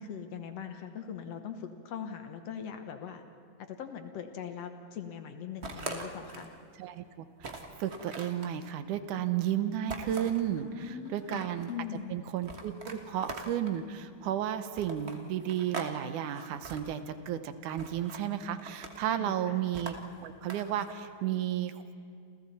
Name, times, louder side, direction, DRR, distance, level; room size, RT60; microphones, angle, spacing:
voice 1, 0.0-3.2 3.6-6.5 10.7-12.1 19.2-19.6, left 8 dB, 65° left, 7 dB, 2.0 m, -41 dB
sound 1, 5.6-6.6 7.0-7.1 7.4-8.5 9.9-10.4 11.0-11.7 12.4-13.8 14.7-15.9 16.2-16.8 17.8-18.2 18.6-19.1 19.7-20.9, right 3 dB, 55° right, 0.7 m, -42 dB
voice 2, 6.8-7.3 7.8-11.7 12.1-20.0 20.2-21.9, right 10 dB, 80° right, 10 dB, 2.4 m, -33 dB
29.0 x 28.0 x 4.3 m, 2.3 s
omnidirectional pair, 3.5 m